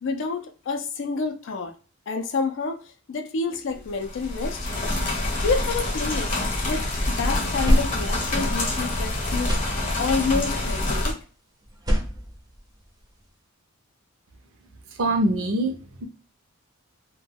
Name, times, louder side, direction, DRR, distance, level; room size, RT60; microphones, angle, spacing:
voice 1, 0.0-1.7 2.1-4.7 5.4-6.3 6.6-9.6 10.0-11.2, left 4 dB, 55° left, 0.4 m, -28 dB
sound 1, 3.9-11.1, left 1 dB, 35° left, 0.8 m, -26 dB
sound 2, 5.3-6.8 7.2-9.0 9.3-10.3 11.6-13.3, equal, 15° right, 0.5 m, -28 dB
voice 2, 15.0-16.0, right 1 dB, 65° right, 0.5 m, -24 dB
2.2 x 2.2 x 3.2 m
head